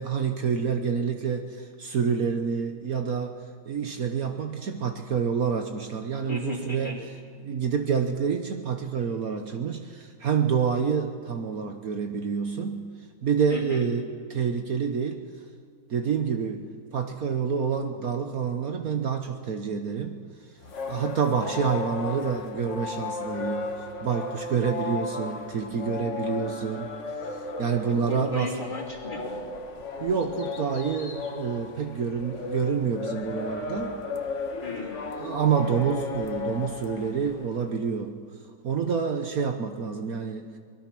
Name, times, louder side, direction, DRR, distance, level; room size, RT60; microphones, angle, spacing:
voice 1, 0.0-3.4 3.7-7.0 7.4-12.9 13.2-14.0 14.3-15.2 15.9-16.6 16.9-20.1 20.9-26.9 27.3-28.5 30.0-34.0 35.1-38.2 38.6-40.5, right 6 dB, 60° right, 6 dB, 1.4 m, -28 dB
voice 2, 6.2-7.0 13.5-13.9 28.0-29.4 34.6-35.0, left 3 dB, 25° left, -1 dB, 3.1 m, -35 dB
sound 1, 20.6-37.6, left 3 dB, 45° left, 1.5 m, -35 dB
23.5 x 20.5 x 6.1 m, 2.1 s
omnidirectional pair, 1.9 m